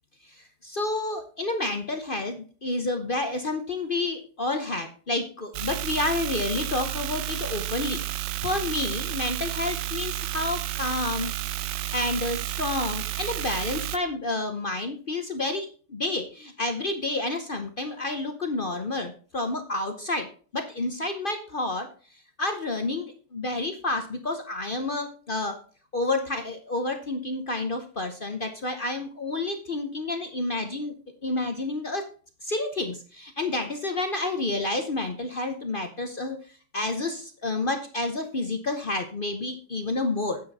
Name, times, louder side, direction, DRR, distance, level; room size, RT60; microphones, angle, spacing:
voice 1, 0.2-8.0 8.4-11.3 11.9-21.9 22.4-25.6 25.9-30.9 31.2-32.1 32.4-36.4 36.7-40.4, left 2 dB, 45° left, 6 dB, 0.7 m, -29 dB
sound 1, 5.5-14.0, right 14 dB, 75° right, 1.2 m, -31 dB
9.2 x 7.8 x 4.1 m, 0.40 s
omnidirectional pair, 2.1 m